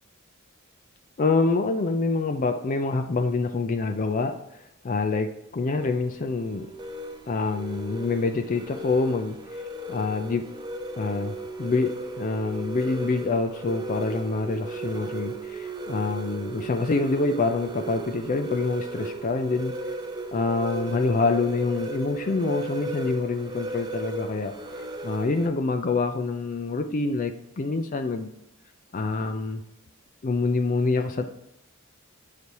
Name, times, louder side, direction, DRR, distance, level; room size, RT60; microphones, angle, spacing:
voice 1, 1.2-6.7 7.3-9.6 9.9-10.5 11.0-11.3 11.6-11.9 12.2-19.7 20.3-24.5 25.0-28.3 28.9-29.6 30.2-31.3, left 3 dB, 40° left, 7 dB, 0.4 m, -26 dB
sound 1, 5.8-25.5, right 2 dB, 20° right, 0.6 m, -36 dB
6.7 x 4.2 x 4.6 m, 0.84 s
head